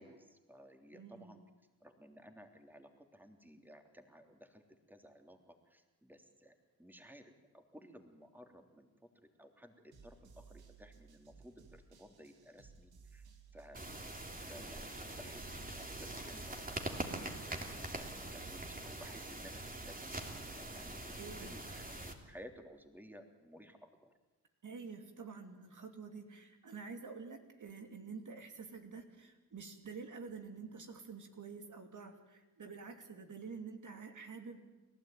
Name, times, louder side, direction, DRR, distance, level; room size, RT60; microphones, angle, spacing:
voice 1, 0.0-1.4 1.8-9.1 9.4-13.3 13.5-13.8 14.4-21.9 22.2-24.1, equal, 5° right, 5 dB, 3.3 m, -57 dB
voice 2, 0.9-1.4 21.2-21.6 24.6-34.6, right 5 dB, 55° right, 5 dB, 2.7 m, -48 dB
sound 1, 9.9-20.6, right 5 dB, 75° right, 2.8 m, -60 dB
sound 2, 13.7-22.1, right 2 dB, 25° right, 3.4 m, -44 dB
29.5 x 12.5 x 9.2 m, 1.1 s
supercardioid pair, 50°, 37 cm